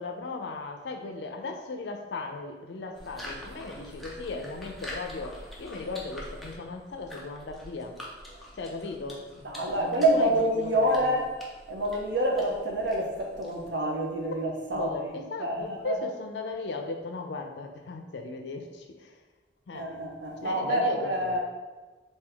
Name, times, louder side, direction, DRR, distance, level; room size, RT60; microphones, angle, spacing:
voice 1, 0.0-7.9 8.5-11.1 14.7-19.2 19.7-20.0 20.4-21.4, left 3 dB, 80° left, 4 dB, 0.5 m, -37 dB
sound 1, 2.9-13.8, equal, ahead, 0.5 m, -45 dB
voice 2, 9.4-11.3 11.7-15.0 15.4-16.1 19.7-21.4, right 1 dB, 85° right, 1 dB, 0.7 m, -27 dB
3.5 x 2.7 x 3.4 m, 1.3 s
head